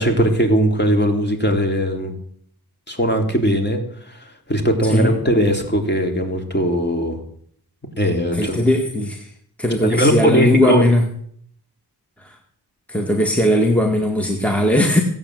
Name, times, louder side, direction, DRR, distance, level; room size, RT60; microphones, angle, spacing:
voice 1, 0.0-2.1 2.9-3.8 4.1-7.2 8.0-8.6 9.8-10.8, equal, 25° left, 2 dB, 3.5 m, -19 dB
voice 2, 8.3-9.3 9.6-11.1 12.2-12.4 12.9-15.0, left 1 dB, 5° left, 2 dB, 2.0 m, -18 dB
17.5 x 8.8 x 7.9 m, 0.64 s
wide cardioid pair, 65°, 41 cm